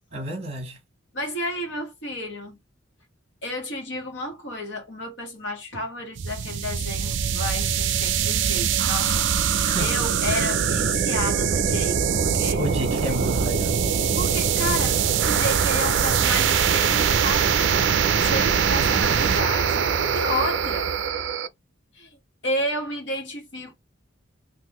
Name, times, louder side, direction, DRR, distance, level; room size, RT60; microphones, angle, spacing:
voice 1, 0.1-0.8 9.6-9.9 12.6-13.8, right 1 dB, 30° right, 1.5 m, -30 dB
voice 2, 1.1-2.6 3.4-12.6 14.2-15.0 15.2-20.9 21.9-22.2 22.4-23.8, left 1 dB, 60° left, 1.3 m, -31 dB
sound 1, 6.2-21.5, right 7 dB, 60° right, 0.4 m, -22 dB
3.8 x 2.5 x 2.9 m
head